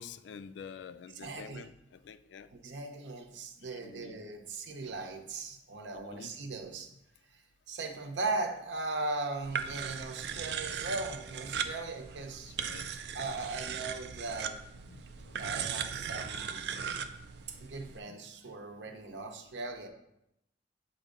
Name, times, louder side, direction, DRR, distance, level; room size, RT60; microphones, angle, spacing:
voice 1, 0.0-2.5 3.6-4.2 6.0-6.3 12.5-13.0 14.9-16.1 16.7-17.0 18.1-18.2, left 6 dB, 85° left, 13 dB, 0.3 m, -49 dB
voice 2, 1.1-1.7 2.5-6.9 7.3-12.6 13.1-14.6 15.3-16.6 17.5-19.9, right 3 dB, 85° right, 4 dB, 0.8 m, -38 dB
sound 1, 9.4-18.0, right 7 dB, 70° right, 0.4 m, -38 dB
7.2 x 2.7 x 5.1 m, 0.82 s
head